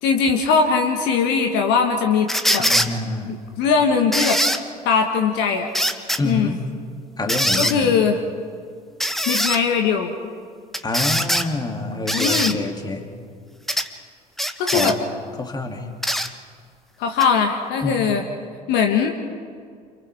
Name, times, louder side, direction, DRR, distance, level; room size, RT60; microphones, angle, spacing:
voice 1, 0.0-2.7 3.3-4.4 4.8-5.7 6.2-6.6 7.6-8.2 9.3-10.1 12.1-12.5 14.6-14.9 17.0-18.2 18.7-19.1, left 5 dB, 60° left, 4 dB, 1.6 m, -20 dB
sound 1, 2.3-2.9 4.1-4.6 5.7-6.2 7.3-7.8 9.0-9.6 10.7-11.5 12.1-12.5 13.7-13.9 14.4-15.0 16.0-16.3 17.2-17.3, equal, ahead, 1.3 m, -22 dB
voice 2, 2.6-3.3 6.2-6.5 7.2-7.9 10.8-13.1 14.7-15.0 15.4-15.9 17.8-18.0, left 2 dB, 20° left, 3 dB, 2.7 m, -27 dB
29.0 x 28.5 x 3.6 m, 2.1 s
figure-of-eight pair, 60°, 21 cm